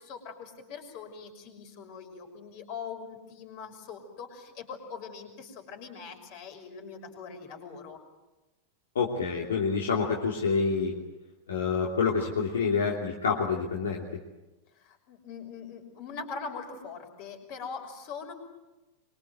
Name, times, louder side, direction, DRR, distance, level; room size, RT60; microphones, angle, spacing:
voice 1, 0.0-8.0 14.7-18.3, left 5 dB, 45° left, 4 dB, 6.0 m, -42 dB
voice 2, 8.9-11.0 11.5-14.0, left 5 dB, 65° left, -1 dB, 3.0 m, -27 dB
24.5 x 24.5 x 7.9 m, 1.1 s
figure-of-eight pair, 90°, 0 cm